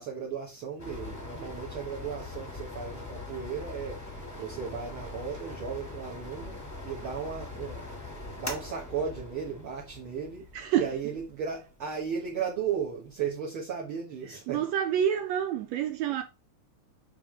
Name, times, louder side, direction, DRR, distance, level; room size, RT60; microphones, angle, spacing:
voice 1, 0.0-4.0 4.4-7.9 8.4-10.5 10.8-14.7, right 7 dB, 55° right, 1.8 m, -35 dB
sound 1, 0.8-13.2, left 2 dB, 10° left, 0.9 m, -42 dB
voice 2, 10.5-10.9 14.5-16.2, right 9 dB, 75° right, 1.7 m, -27 dB
9.9 x 3.5 x 3.2 m
omnidirectional pair, 3.5 m